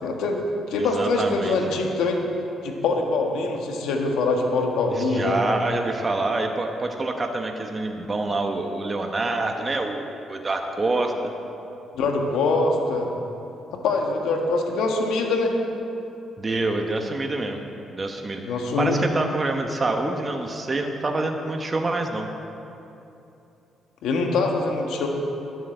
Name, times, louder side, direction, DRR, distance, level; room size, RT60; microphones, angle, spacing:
voice 1, 0.0-2.2 2.6-5.4 11.9-13.1 13.8-15.5 18.4-19.0 24.0-25.1, left 3 dB, 85° left, 2 dB, 1.6 m, -24 dB
voice 2, 0.8-1.6 4.9-11.3 16.4-17.6 17.9-18.4 18.8-22.3, right 2 dB, 30° right, 3 dB, 1.0 m, -26 dB
10.5 x 7.9 x 7.8 m, 2.9 s
cardioid pair, 90°, 0 cm